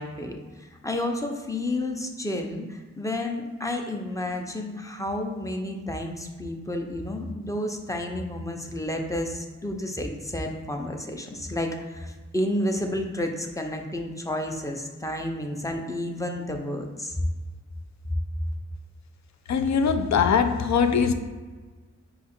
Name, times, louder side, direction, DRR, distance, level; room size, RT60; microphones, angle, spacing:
voice 1, 0.0-17.2, left 1 dB, 10° left, 2 dB, 0.5 m, -31 dB
voice 2, 19.5-21.1, left 6 dB, 70° left, 8 dB, 0.4 m, -21 dB
4.6 x 2.4 x 4.2 m, 1.3 s
wide cardioid pair, 70°, 30 cm